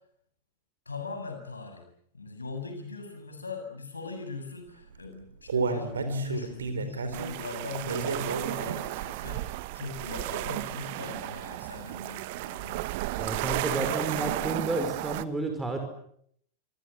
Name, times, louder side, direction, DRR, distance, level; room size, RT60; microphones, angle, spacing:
voice 1, 0.9-1.8 2.1-12.8 13.7-14.0, left 4 dB, 80° left, 6 dB, 7.5 m, -39 dB
Human voice, 4.9-9.1 9.5-9.6 10.0-10.1, right 5 dB, 70° right, 4.3 m, -32 dB
sound 1, 7.1-15.2, right 18 dB, 50° right, 1.3 m, -34 dB
voice 2, 13.2-15.8, right 2 dB, 10° right, 4 dB, 5.3 m, -31 dB
28.0 x 24.0 x 8.1 m, 0.68 s
figure-of-eight pair, 90°, 0 cm